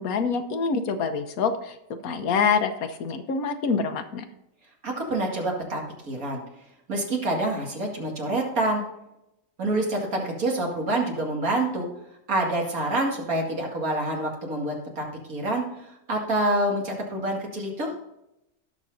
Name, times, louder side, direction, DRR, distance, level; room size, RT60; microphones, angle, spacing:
voice 1, 0.0-1.7 2.0-4.3, left 5 dB, 80° left, 8 dB, 1.3 m, -26 dB
voice 2, 4.8-5.8 6.1-6.4 6.9-8.8 9.6-11.9 12.3-15.6 16.1-17.9, right 1 dB, 75° right, 0 dB, 2.6 m, -27 dB
18.0 x 6.2 x 2.7 m, 0.86 s
omnidirectional pair, 1.5 m